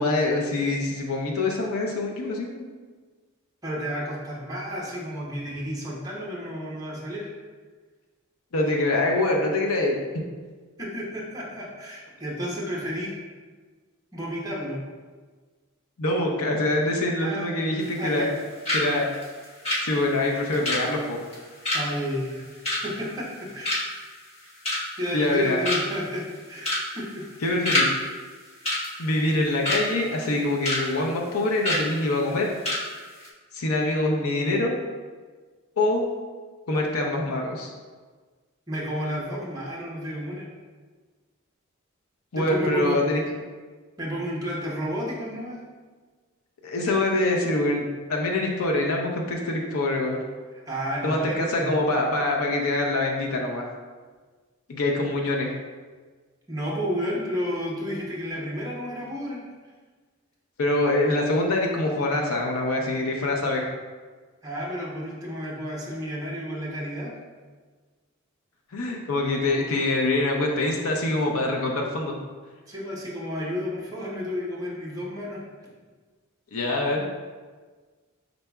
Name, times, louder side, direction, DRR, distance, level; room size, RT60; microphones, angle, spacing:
voice 1, 0.0-2.6 8.5-10.0 16.0-18.3 18.7-19.1 19.8-21.2 25.1-25.6 27.4-27.9 29.0-32.5 33.5-34.7 35.8-36.0 36.7-37.7 42.3-43.2 46.6-50.2 51.0-53.7 54.7-55.5 60.6-63.6 68.7-72.1 76.5-77.0, left 2 dB, 80° left, 0 dB, 0.6 m, -24 dB
voice 2, 3.6-7.3 10.8-13.1 14.1-14.8 17.2-17.5 18.0-18.3 21.7-22.4 22.8-23.8 25.0-27.2 27.6-27.8 38.7-40.5 42.4-43.0 44.0-45.6 50.7-51.9 56.5-59.4 64.4-67.1 72.7-75.4, equal, 15° right, -5 dB, 0.8 m, -31 dB
sound 1, 17.8-18.4 18.6-18.9 19.1-23.4 23.6-24.0 24.4-25.0 25.3-25.4 25.6-26.1 26.6-26.9 27.1-27.9 28.2-28.3 28.6-29.8 30.2-30.8 31.1-31.3 31.6-31.8 32.3-32.4 32.6-32.8 33.1-33.3, left 1 dB, 30° left, 1.3 m, -26 dB
5.5 x 3.9 x 2.3 m, 1.4 s
head